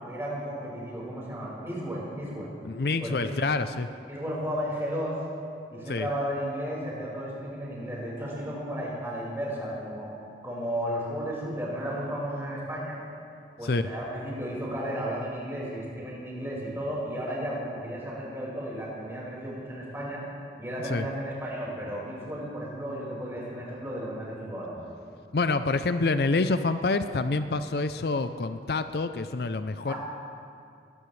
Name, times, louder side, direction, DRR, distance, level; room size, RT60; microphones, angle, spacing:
voice 1, 0.0-2.5 3.0-3.3 4.1-5.2 5.7-10.1 10.4-13.0 13.6-20.2 20.6-24.7 29.9-30.0, equal, 15° right, -6 dB, 5.0 m, -34 dB
voice 2, 2.6-3.9 5.9-6.1 13.6-13.9 20.8-21.0 25.3-29.9, left 3 dB, 60° left, 10 dB, 0.5 m, -27 dB
22.0 x 18.0 x 3.3 m, 2.4 s
head